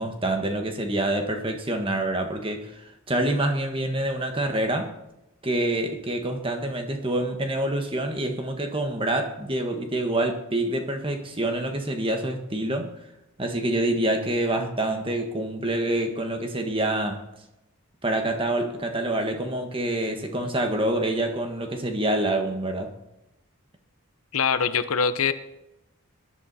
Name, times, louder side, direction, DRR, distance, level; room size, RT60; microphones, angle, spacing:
voice 1, 0.0-5.0 5.4-12.9 13.4-17.2 18.0-22.9, right 1 dB, 25° right, 4 dB, 1.5 m, -26 dB
voice 2, 24.3-25.3, left 6 dB, 75° left, 11 dB, 0.8 m, -23 dB
20.5 x 11.0 x 4.2 m, 0.92 s
head